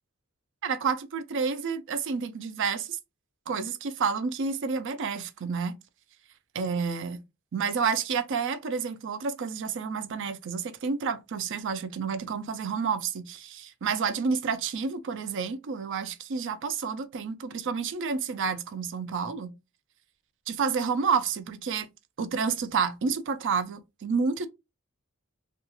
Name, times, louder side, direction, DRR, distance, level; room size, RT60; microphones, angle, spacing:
voice 1, 0.6-3.0 3.5-5.8 6.5-7.2 7.5-19.5 20.5-21.9 22.2-24.5, right 5 dB, 60° right, 0.4 m, -29 dB
2.4 x 2.3 x 2.9 m
head